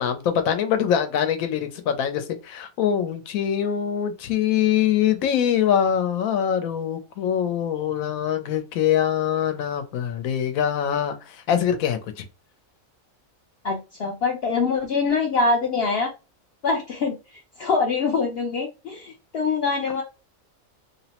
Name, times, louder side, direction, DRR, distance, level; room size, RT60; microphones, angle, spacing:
voice 1, 0.0-12.3, left 9 dB, 80° left, 1.0 m, -23 dB
voice 2, 13.6-16.1 16.6-20.0, left 4 dB, 65° left, 0.6 m, -24 dB
2.9 x 2.0 x 2.8 m
omnidirectional pair, 1.4 m